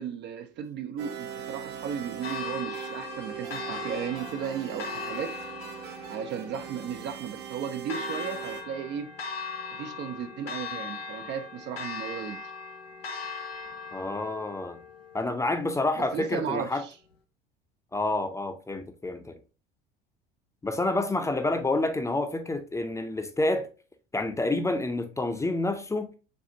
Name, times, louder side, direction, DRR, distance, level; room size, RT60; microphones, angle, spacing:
voice 1, 0.0-5.4 6.1-9.2 9.7-12.4 16.0-16.9, right 8 dB, 35° right, 0.5 m, -35 dB
sound 1, 1.0-8.6, right 8 dB, 65° right, 0.8 m, -40 dB
Church bell, 2.2-16.2, left 5 dB, 85° left, 0.6 m, -39 dB
voice 2, 13.9-14.8 15.1-16.8 17.9-19.4 20.6-23.7 24.1-26.1, left 2 dB, 10° left, 0.6 m, -28 dB
6.6 x 2.4 x 2.7 m
figure-of-eight pair, 65°, 29 cm